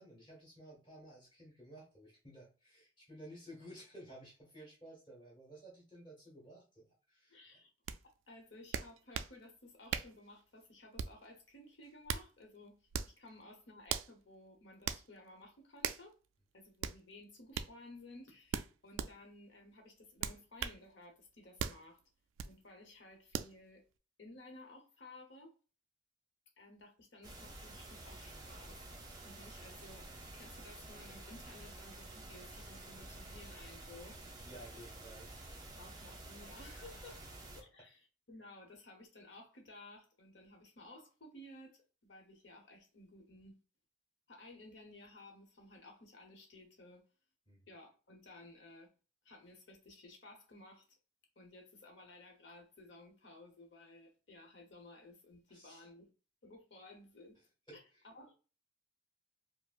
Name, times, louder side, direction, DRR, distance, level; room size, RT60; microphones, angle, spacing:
voice 1, 0.0-7.4 34.4-35.3 37.1-37.2 47.5-47.7 55.5-55.9 57.7-57.8, right 1 dB, 25° left, 1.7 m, -54 dB
voice 2, 7.3-7.7 8.0-16.2 16.5-22.0 22.5-23.8 24.2-25.5 26.6-28.8 29.2-30.1 30.3-34.2 35.8-37.2 37.5-43.5 44.3-47.1 47.7-48.9 49.2-50.8 51.4-56.1 56.4-57.4 57.7-58.3, left 2 dB, 65° left, 1.0 m, -56 dB
sound 1, 7.9-8.0 8.7-9.3 9.9-10.2 11.0-11.3 11.8-12.3 12.9-13.2 13.9-14.1 14.9-15.0 15.8-16.1 16.8-17.0 17.5-17.7 18.5-19.1 20.2-20.8 21.6-21.8 22.4-22.5 23.3-23.5, right 7 dB, 80° right, 0.3 m, -38 dB
sound 2, 27.2-37.6, right 2 dB, 20° right, 0.7 m, -50 dB
4.8 x 2.1 x 2.4 m
head